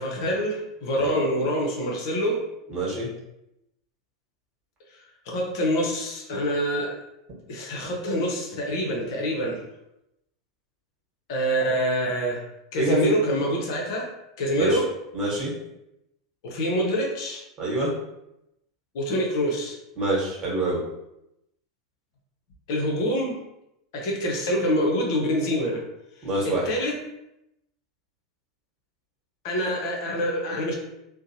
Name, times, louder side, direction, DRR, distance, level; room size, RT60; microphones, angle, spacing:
voice 1, 0.0-2.4 5.3-7.0 7.5-9.6 11.3-12.4 12.7-14.1 14.4-14.8 16.4-17.4 18.9-19.8 22.7-23.4 23.9-25.8 26.4-27.0 29.4-30.7, equal, 60° left, 0 dB, 0.6 m, -26 dB
voice 2, 2.7-3.1 12.8-13.0 14.6-14.8 15.1-15.5 17.6-17.9 20.0-20.8 26.2-26.7, right 2 dB, 35° right, -5 dB, 1.1 m, -26 dB
2.7 x 2.0 x 2.7 m, 0.86 s
hypercardioid pair, 90°, 2 cm